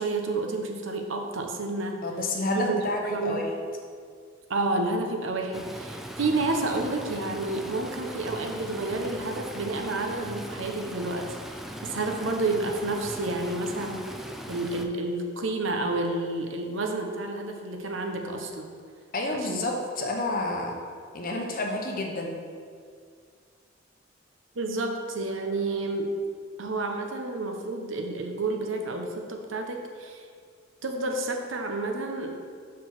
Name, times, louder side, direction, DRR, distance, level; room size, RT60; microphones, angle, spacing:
voice 1, 0.0-2.0 2.5-2.8 3.1-3.5 4.5-11.2 11.5-14.0 14.5-18.7 19.3-19.6 24.5-26.2 26.6-30.3 30.8-32.4, right 2 dB, 70° right, 3 dB, 0.8 m, -30 dB
voice 2, 2.0-3.5 19.1-20.8 21.1-22.4, left 2 dB, 45° left, 1 dB, 0.9 m, -29 dB
Stream, 5.5-14.8, equal, ahead, 0.4 m, -40 dB
5.9 x 4.7 x 5.9 m, 2.1 s
head